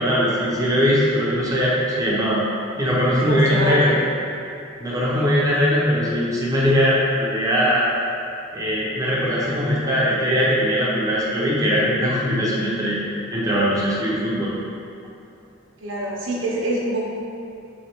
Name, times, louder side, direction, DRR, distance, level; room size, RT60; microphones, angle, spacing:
voice 1, 0.0-2.4 2.8-3.9 4.8-7.9 8.5-13.0 13.3-14.5, equal, 15° right, -7 dB, 0.8 m, -20 dB
voice 2, 3.2-4.0 15.8-17.1, right 2 dB, 65° right, -5 dB, 0.9 m, -25 dB
3.4 x 3.3 x 4.5 m, 2.6 s
head